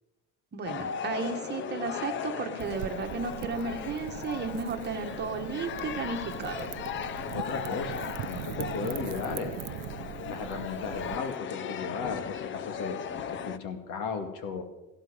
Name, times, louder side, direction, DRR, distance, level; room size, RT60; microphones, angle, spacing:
voice 1, 0.5-6.7, right 5 dB, 30° right, 5 dB, 1.6 m, -34 dB
sound 1, 0.7-13.6, left 7 dB, 35° left, 0.8 m, -37 dB
Wind / Fire, 2.6-11.2, right 16 dB, 70° right, 0.6 m, -41 dB
voice 2, 7.3-9.6 10.3-13.0 13.3-14.6, left 5 dB, 75° left, 7 dB, 2.4 m, -35 dB
18.0 x 15.5 x 5.2 m, 1.0 s
cardioid pair, 155°, 33 cm